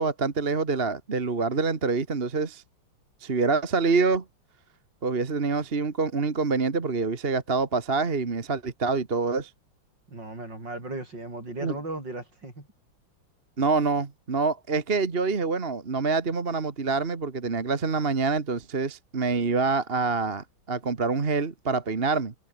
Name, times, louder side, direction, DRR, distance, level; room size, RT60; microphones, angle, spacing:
voice 1, 0.0-2.6 3.2-4.2 5.0-9.5 11.6-11.7 13.6-22.3, right 4 dB, 30° right, 1.7 m, -26 dB
voice 2, 10.1-12.7, right 2 dB, 60° right, 8.6 m, -36 dB
omnidirectional pair, 2.2 m